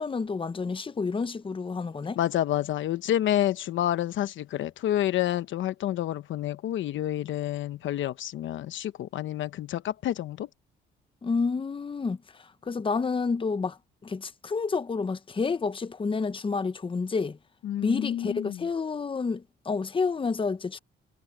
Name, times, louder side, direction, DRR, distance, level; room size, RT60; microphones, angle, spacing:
voice 1, 0.0-2.2 11.2-13.8 14.0-17.4 17.8-20.8, left 4 dB, 25° left, 0.9 m, -29 dB
voice 2, 2.2-10.5 17.6-18.6, left 12 dB, 75° left, 1.0 m, -29 dB
cardioid pair, 90°, 20 cm